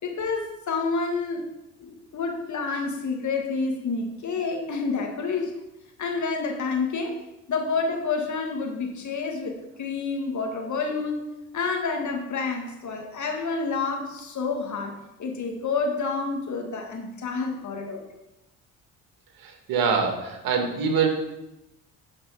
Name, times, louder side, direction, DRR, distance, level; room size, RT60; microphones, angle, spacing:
voice 1, 0.0-1.5 1.8-5.5 6.0-7.2 7.5-11.3 11.5-18.1, left 4 dB, 50° left, 2 dB, 2.1 m, -29 dB
voice 2, 19.4-21.1, right 5 dB, 65° right, 3 dB, 2.1 m, -24 dB
10.0 x 5.1 x 5.1 m, 0.93 s
hypercardioid pair, 55°, 39 cm